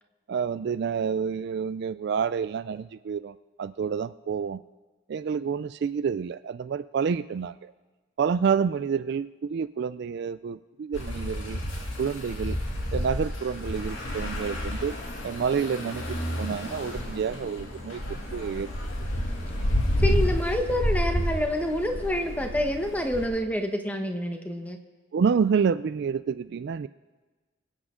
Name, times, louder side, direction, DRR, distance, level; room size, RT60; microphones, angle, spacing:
voice 1, 0.3-4.6 5.1-7.7 8.2-11.6 12.0-12.6 12.9-14.9 15.2-18.0 18.3-18.7 25.1-26.9, right 6 dB, 55° right, 14 dB, 0.3 m, -28 dB
sound 1, 10.9-23.3, equal, 90° left, 2.3 m, -30 dB
voice 2, 20.0-24.8, left 1 dB, 10° left, 4 dB, 1.0 m, -27 dB
24.5 x 8.5 x 3.7 m, 1.3 s
head